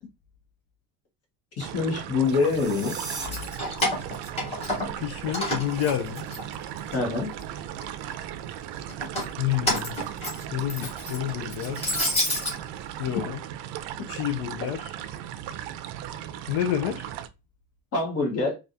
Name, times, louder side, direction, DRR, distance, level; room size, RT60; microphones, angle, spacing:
voice 1, 1.6-3.0 6.9-7.3 10.8-10.9 17.9-18.6, left 4 dB, 35° left, 1.2 m, -25 dB
sound 1, 1.6-17.3, right 11 dB, 80° right, 0.5 m, -37 dB
sound 2, 2.2-3.3, right 4 dB, 10° right, 0.3 m, -37 dB
Keys jangling, 3.1-5.0 5.3-7.0 7.4-8.1 8.9-12.5, left 1 dB, 15° left, 1.0 m, -30 dB
voice 2, 5.0-6.3 9.4-10.0 10.5-11.9 13.0-13.4 14.1-14.9 16.5-17.1, left 11 dB, 55° left, 0.5 m, -29 dB
3.4 x 2.4 x 2.6 m
cardioid pair, 175°, 42 cm